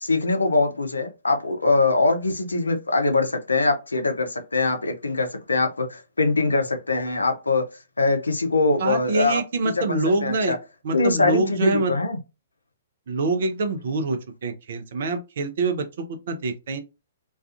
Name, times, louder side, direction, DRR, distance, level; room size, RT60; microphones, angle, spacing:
voice 1, 0.0-7.6 8.0-9.4 9.8-10.6 10.9-12.2, left 3 dB, 80° left, 0.5 m, -22 dB
voice 2, 8.8-10.5 10.8-11.9 13.1-16.8, right 3 dB, 55° right, 0.5 m, -25 dB
2.4 x 2.3 x 2.4 m
figure-of-eight pair, 120°, 0 cm